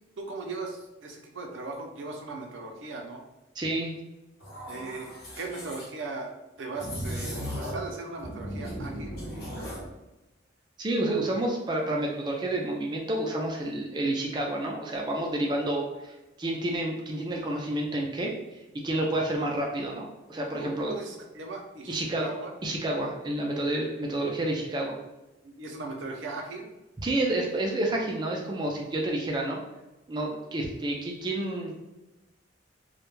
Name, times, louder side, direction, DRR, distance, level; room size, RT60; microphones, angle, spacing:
voice 1, 0.2-3.2 4.7-5.1 5.3-6.3 6.6-9.1 20.6-22.5 25.4-26.7, right 3 dB, 80° right, 1 dB, 0.5 m, -38 dB
voice 2, 3.6-3.9 10.8-18.3 18.8-20.9 21.9-22.3 22.6-25.0 27.0-29.6 30.1-31.7, right 1 dB, 20° right, 0 dB, 0.3 m, -29 dB
sound 1, 4.4-5.9 6.8-7.9 8.2-9.9, equal, 50° left, 0.8 m, -36 dB
2.2 x 2.1 x 3.0 m, 1.0 s
head